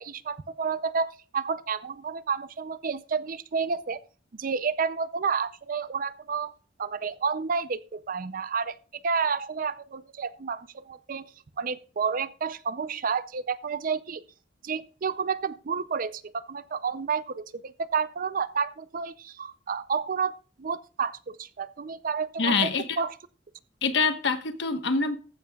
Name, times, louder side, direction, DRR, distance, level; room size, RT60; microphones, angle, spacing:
voice 1, 0.0-4.0 4.3-6.5 6.8-8.8 9.0-11.3 11.6-14.2 14.6-22.7 23.0-23.1, right 5 dB, 45° right, 0.5 m, -30 dB
voice 2, 22.4-23.0 23.8-25.2, left 4 dB, 65° left, 1.2 m, -25 dB
14.5 x 10.5 x 2.3 m
head